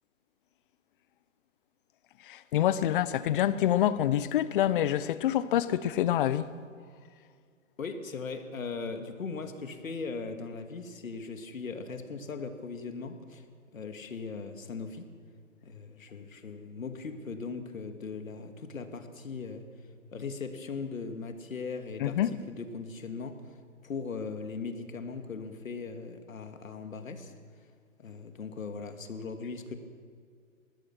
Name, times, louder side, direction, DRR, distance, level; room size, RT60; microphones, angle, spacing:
voice 1, 2.2-6.5 22.0-22.3, left 11 dB, 40° left, 1.0 m, -26 dB
voice 2, 7.8-13.4 13.7-15.1 15.6-19.6 20.1-22.2 22.5-23.4 23.8-27.3 28.0-29.7, left 4 dB, 75° left, 2.6 m, -39 dB
25.5 x 20.0 x 6.2 m
hypercardioid pair, 135°, 40 cm